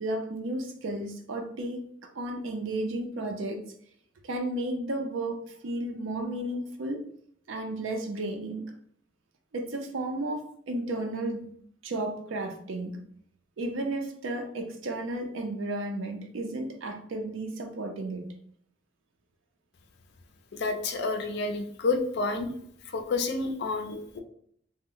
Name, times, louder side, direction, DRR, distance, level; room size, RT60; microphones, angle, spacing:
voice 1, 0.0-3.6 4.2-7.0 7.5-8.7 9.5-11.4 11.8-13.0 13.6-18.3, right 1 dB, 75° right, 4 dB, 0.5 m, -33 dB
voice 2, 20.5-22.5 22.8-24.2, left 3 dB, 55° left, 5 dB, 0.4 m, -29 dB
2.1 x 2.0 x 3.7 m, 0.64 s
head